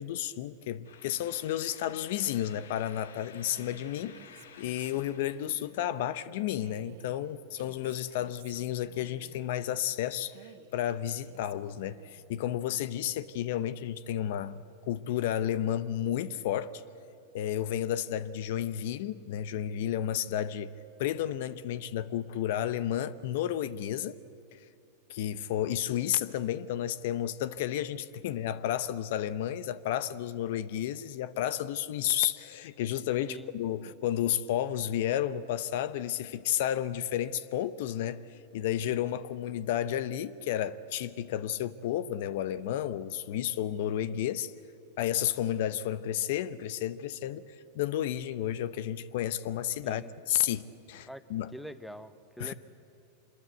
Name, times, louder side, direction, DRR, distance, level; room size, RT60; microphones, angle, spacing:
voice 1, 0.0-4.2 4.6-16.8 17.3-20.7 21.0-24.2 24.5-24.6 25.1-44.5 45.0-47.4 47.7-50.6 50.9-51.5 52.4-52.5, left 11 dB, 65° left, 0.7 m, -32 dB
sound 1, 0.8-5.8, left 7 dB, 85° left, 1.5 m, -53 dB
Female speech woman speaking, 3.5-5.6 6.6-9.5 10.3-12.2, right 11 dB, 65° right, 1.3 m, -54 dB
voice 2, 33.2-33.5 49.8-50.1 51.1-51.2 51.5-52.5, equal, ahead, 1.0 m, -44 dB
25.0 x 21.5 x 8.1 m
hypercardioid pair, 110°, 0 cm